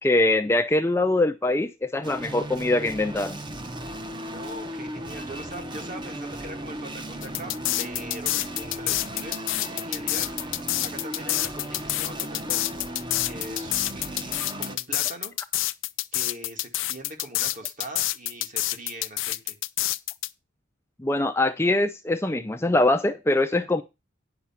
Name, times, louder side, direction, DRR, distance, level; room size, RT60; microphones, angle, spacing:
voice 1, 0.0-3.4 21.0-23.8, left 2 dB, 15° left, 0.5 m, -23 dB
sound 1, 2.0-14.8, right 1 dB, 25° right, 1.0 m, -36 dB
voice 2, 4.1-7.5 7.8-10.3 10.8-12.7 13.2-15.3 16.1-19.6, right 1 dB, 40° right, 2.2 m, -41 dB
sound 2, 7.2-20.3, left 17 dB, 70° left, 0.5 m, -27 dB
9.9 x 5.8 x 5.8 m
head